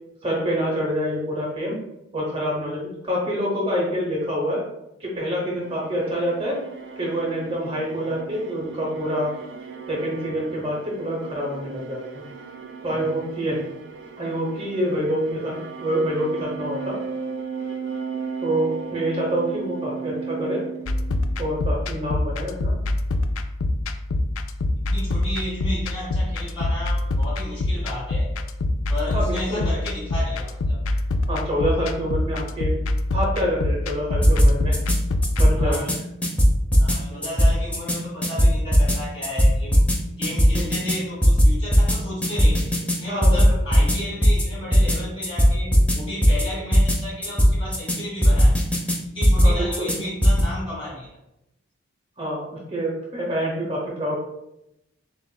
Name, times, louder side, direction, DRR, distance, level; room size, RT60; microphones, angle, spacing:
voice 1, 0.2-1.8 2.1-4.6 5.0-6.6 7.0-9.3 9.9-12.2 12.8-13.6 14.2-17.0 18.4-20.6 21.4-22.7 29.1-29.7 31.3-32.7 33.1-34.8 35.4-35.8 36.9-37.1 40.5-40.6 43.1-43.6 49.4-49.9 52.2-54.2, equal, 25° right, -2 dB, 0.8 m, -26 dB
sound 1, 5.3-21.6, right 5 dB, 60° right, 0.4 m, -36 dB
sound 2, 20.9-35.7, left 1 dB, 80° left, 0.3 m, -25 dB
voice 2, 24.9-28.3 28.7-30.8 35.6-35.9 36.8-39.9 40.2-48.6 49.1-51.2, left 1 dB, 25° left, -5 dB, 1.3 m, -33 dB
sound 3, 34.2-35.0 35.2-36.0 36.2-37.0 37.2-38.0 38.2-39.0 39.2-40.0 40.2-41.0 41.2-42.0 42.2-43.0 43.2-44.0 44.2-44.4 44.7-45.0 45.2-46.0 46.2-46.4 46.7-47.0 47.2-48.0 48.2-49.0 49.2-50.0 50.2-50.4, equal, 5° left, 0.5 m, -16 dB
6.9 x 2.4 x 2.2 m, 0.86 s
head